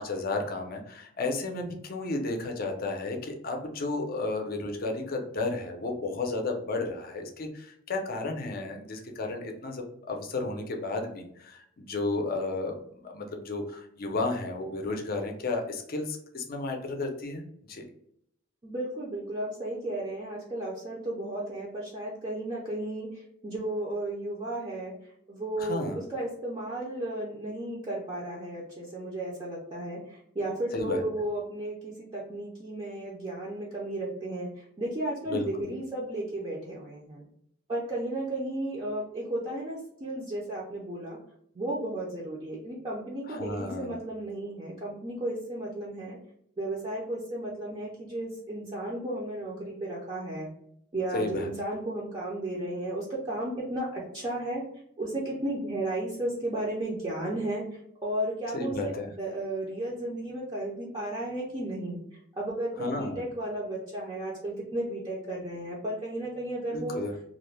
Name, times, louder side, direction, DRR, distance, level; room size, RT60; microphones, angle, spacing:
voice 1, 0.0-17.8 25.6-26.0 30.7-31.0 35.3-35.7 43.3-43.9 51.1-51.5 58.5-59.1 62.8-63.2 66.7-67.1, left 2 dB, 45° left, 3 dB, 0.5 m, -33 dB
voice 2, 18.6-37.2 37.7-41.2 41.5-46.2 46.6-50.5 50.9-54.6 55.0-62.0 62.3-67.0, right 1 dB, 25° right, -6 dB, 0.5 m, -34 dB
2.4 x 2.1 x 3.1 m, 0.73 s
head